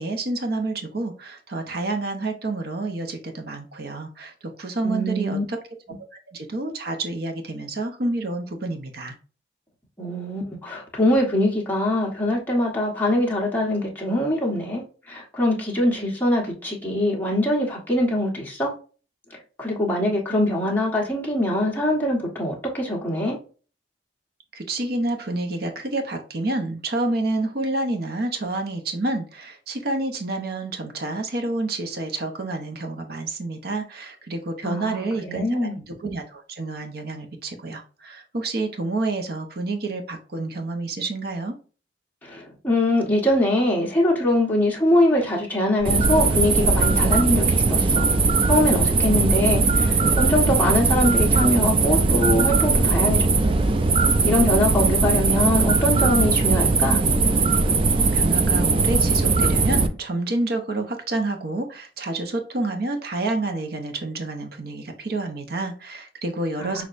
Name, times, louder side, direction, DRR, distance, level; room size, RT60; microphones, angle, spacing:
voice 1, 0.0-4.3 4.6-5.6 6.1-9.1 24.5-41.6 58.1-66.8, right 2 dB, 60° right, 0.8 m, -28 dB
voice 2, 4.8-5.4 10.0-14.8 15.1-18.7 19.3-23.4 34.6-35.7 42.2-48.1 48.5-53.6 54.2-57.0 66.6-66.8, left 1 dB, 10° left, 1.4 m, -23 dB
sound 1, 45.8-59.9, right 3 dB, 30° right, 0.4 m, -19 dB
6.2 x 2.9 x 2.5 m
head